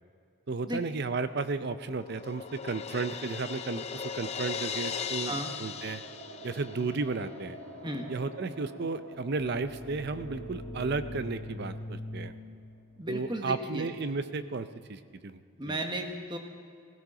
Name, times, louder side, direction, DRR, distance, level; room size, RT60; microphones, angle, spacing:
voice 1, 0.5-6.0 6.4-7.6 8.1-12.3 13.1-15.4 15.7-15.8, right 4 dB, 50° right, 12 dB, 0.6 m, -33 dB
Crash cymbal, 1.3-7.0, left 7 dB, 30° left, 0.5 m, -38 dB
sound 1, 2.8-13.0, right 1 dB, 70° right, 1.2 m, -50 dB
voice 2, 5.2-5.5 7.8-8.1 13.0-13.9 15.6-16.4, right 1 dB, 20° right, 4 dB, 1.2 m, -34 dB
sound 2, 9.3-14.9, equal, 10° left, 3.6 m, -43 dB
16.5 x 15.5 x 5.0 m, 2.3 s
head